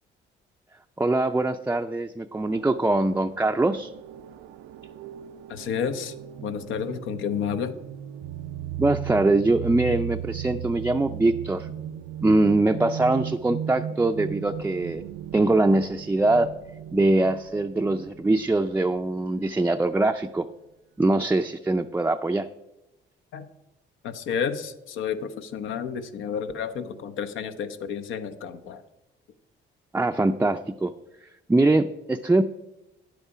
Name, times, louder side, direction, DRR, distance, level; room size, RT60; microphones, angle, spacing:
voice 1, 1.0-3.9 8.8-11.7 12.2-15.0 15.3-16.5 16.9-20.5 21.0-22.5 29.9-30.9 31.5-32.4, right 2 dB, 10° right, 5 dB, 0.4 m, -23 dB
sound 1, 2.3-19.5, right 11 dB, 90° right, 0.5 m, -37 dB
voice 2, 5.5-7.8 23.3-23.5 24.0-28.8, left 7 dB, 85° left, 10 dB, 0.9 m, -31 dB
10.0 x 8.1 x 4.9 m, 0.97 s
cardioid pair, 90°, 20 cm